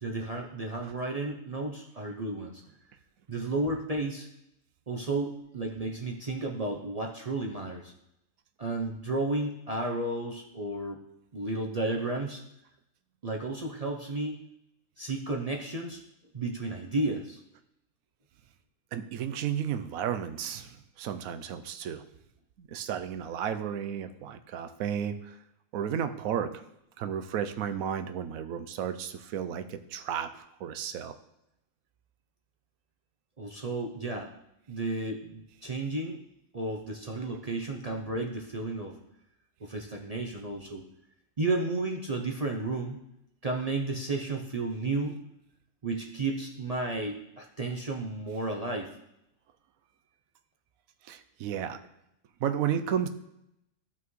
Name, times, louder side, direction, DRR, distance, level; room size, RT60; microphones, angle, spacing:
voice 1, 0.0-2.6 3.3-4.3 4.9-7.9 8.6-11.0 11.3-12.4 13.2-14.4 15.0-16.0 16.3-17.4 33.4-34.3 34.7-36.2 36.5-39.0 39.6-40.8 41.4-43.0 43.4-45.2 45.8-48.9, right 2 dB, 40° right, 1 dB, 0.5 m, -32 dB
voice 2, 18.9-22.0 22.6-25.3 25.7-26.6 27.0-31.1 51.0-51.8 52.4-53.1, right 8 dB, 75° right, 9 dB, 1.1 m, -33 dB
13.0 x 5.9 x 3.2 m, 0.81 s
omnidirectional pair, 1.5 m